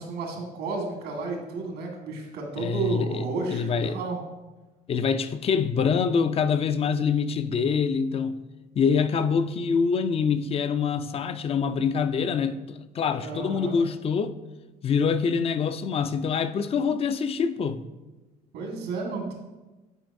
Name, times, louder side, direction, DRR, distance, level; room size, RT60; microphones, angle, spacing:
voice 1, 0.0-4.2 13.2-13.8 18.5-19.3, right 3 dB, 85° right, 1.6 m, -32 dB
voice 2, 2.6-4.0 4.9-8.4 8.8-14.4 14.8-17.8, left 6 dB, 35° left, 0.4 m, -25 dB
9.2 x 4.5 x 2.6 m
cardioid pair, 110°, 17 cm